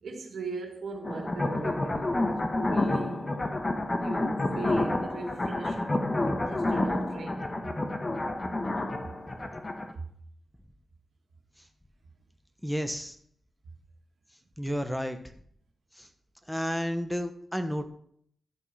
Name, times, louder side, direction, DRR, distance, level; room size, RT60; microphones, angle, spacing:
voice 1, 0.0-3.4 3.9-5.8 6.4-7.5 9.9-10.1, right 3 dB, 80° right, 1.8 m, -39 dB
sound 1, 1.0-9.9, left 2 dB, 30° left, 1.3 m, -29 dB
voice 2, 12.6-13.1 14.6-15.2 16.0-16.1 16.5-17.9, equal, 5° left, 1.2 m, -31 dB
12.0 x 5.5 x 5.6 m
cardioid pair, 65°, 0 cm